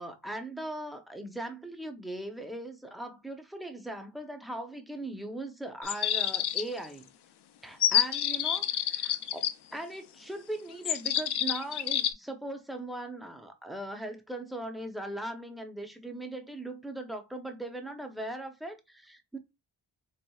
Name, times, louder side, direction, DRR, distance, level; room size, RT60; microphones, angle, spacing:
voice 1, 0.0-7.1 7.6-19.4, right 1 dB, ahead, 0.7 m, -39 dB
sound 1, 5.8-6.9 7.8-9.5 10.8-12.1, left 10 dB, 65° left, 0.5 m, -28 dB
4.2 x 2.4 x 2.3 m
cardioid pair, 60°, 44 cm